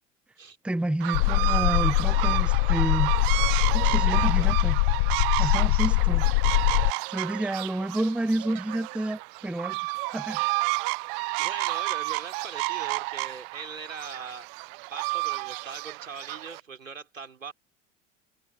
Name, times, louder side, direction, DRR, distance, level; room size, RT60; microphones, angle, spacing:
voice 1, 0.6-3.1 3.7-4.8 5.4-6.2 7.1-9.9 10.1-10.4, right 1 dB, 5° right, 0.9 m, -29 dB
sound 1, 1.0-16.6, right 35 dB, 45° right, 0.7 m, -31 dB
sound 2, 1.1-6.9, left 26 dB, 50° left, 0.7 m, -23 dB
voice 2, 3.9-4.5 5.4-5.8 11.4-14.5 14.9-17.5, right 5 dB, 80° right, 4.0 m, -41 dB
figure-of-eight pair, 75°, 38 cm